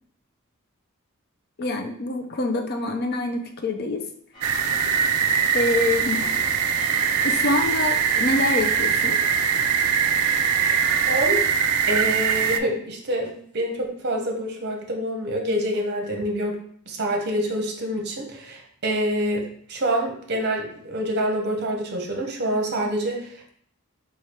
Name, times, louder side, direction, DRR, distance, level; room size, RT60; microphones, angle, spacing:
voice 1, 1.6-4.0 5.5-6.2 7.2-9.2, left 2 dB, 45° left, 4 dB, 0.5 m, -25 dB
sound 1, 4.3-11.2, left 2 dB, 20° left, 1.0 m, -42 dB
sound 2, 4.4-12.6, right 6 dB, 80° right, 0.3 m, -22 dB
voice 2, 11.1-11.4 11.9-16.6 16.9-23.3, right 1 dB, 50° right, 1 dB, 0.7 m, -26 dB
3.2 x 2.4 x 4.2 m, 0.63 s
head